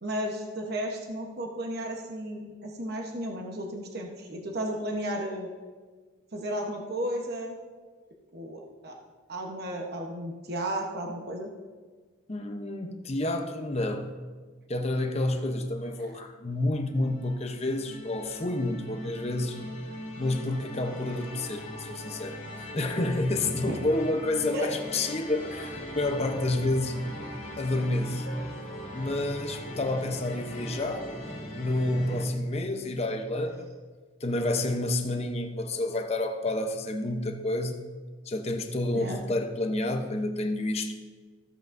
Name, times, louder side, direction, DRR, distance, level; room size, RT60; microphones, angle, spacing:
voice 1, 0.0-5.5 6.3-7.5 8.3-9.0 9.3-11.5 23.7-23.8 24.5-24.7 38.9-39.2, right 1 dB, 50° right, 1 dB, 1.0 m, -33 dB
voice 2, 12.3-14.1 14.7-19.6 20.2-22.4 22.7-27.0 27.6-28.3 28.9-31.1 31.5-33.7 34.2-37.8 38.3-40.9, left 2 dB, 30° left, 5 dB, 0.7 m, -29 dB
sound 1, 16.9-32.3, equal, 75° left, 2.0 m, -40 dB
15.0 x 8.0 x 2.6 m, 1.4 s
head